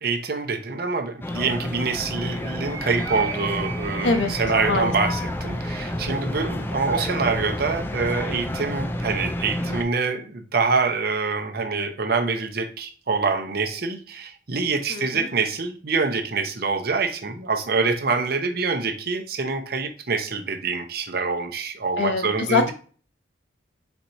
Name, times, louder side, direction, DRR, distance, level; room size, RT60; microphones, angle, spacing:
voice 1, 0.0-22.7, right 4 dB, 55° right, 5 dB, 0.7 m, -25 dB
sound 1, 1.2-9.8, left 1 dB, 10° left, 0.4 m, -30 dB
Animal, 1.8-7.6, right 4 dB, 15° right, 0.7 m, -38 dB
voice 2, 14.9-15.3 22.0-22.7, left 3 dB, 75° left, 5 dB, 0.9 m, -23 dB
4.4 x 4.3 x 2.6 m, 0.40 s
head